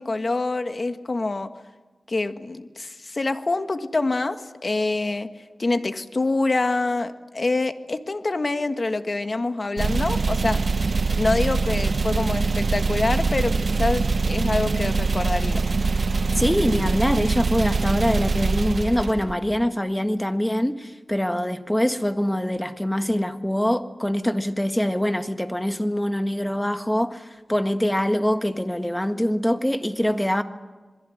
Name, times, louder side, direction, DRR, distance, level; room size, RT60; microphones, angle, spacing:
voice 1, 0.0-1.5 2.1-5.3 5.6-10.6 11.1-15.6, left 2 dB, 45° left, 1.5 m, -26 dB
sound 1, 9.8-19.6, right 4 dB, 65° right, 1.0 m, -23 dB
voice 2, 16.4-30.4, equal, 10° left, 1.5 m, -24 dB
27.5 x 21.5 x 7.8 m
wide cardioid pair, 90°, 0 cm